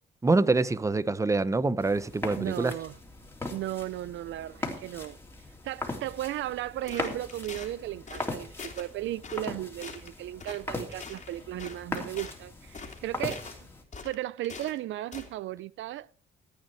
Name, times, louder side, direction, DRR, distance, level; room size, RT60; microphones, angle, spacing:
voice 1, 0.2-2.7, right 3 dB, 15° right, 0.7 m, -25 dB
sound 1, 1.8-13.8, left 2 dB, 10° left, 3.1 m, -39 dB
voice 2, 2.4-2.9 3.5-5.2 5.6-13.5 14.0-16.1, right 14 dB, 75° right, 0.4 m, -35 dB
sound 2, 6.9-7.7 8.1-8.3 8.6-8.9 9.2-9.5 9.8-10.1 10.4-10.6 10.9-12.4 12.7-13.6 13.9-14.8 15.1-15.3, left 5 dB, 35° left, 2.7 m, -43 dB
14.5 x 9.0 x 4.6 m
cardioid pair, 90°, 20 cm